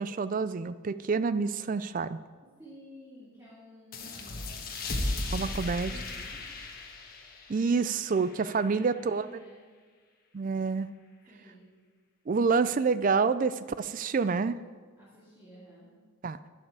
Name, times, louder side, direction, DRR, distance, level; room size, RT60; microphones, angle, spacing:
voice 1, 0.0-2.2 5.3-5.9 7.5-9.3 10.3-10.9 12.3-14.6 16.2-16.4, right 4 dB, 35° right, 14 dB, 0.3 m, -28 dB
voice 2, 2.4-4.4 4.8-6.5 8.5-9.6 11.3-11.7 15.0-15.9, equal, 15° right, -9 dB, 2.5 m, -53 dB
sound 1, 3.9-9.1, left 2 dB, 40° left, 1.4 m, -36 dB
12.0 x 9.7 x 4.8 m, 1.5 s
head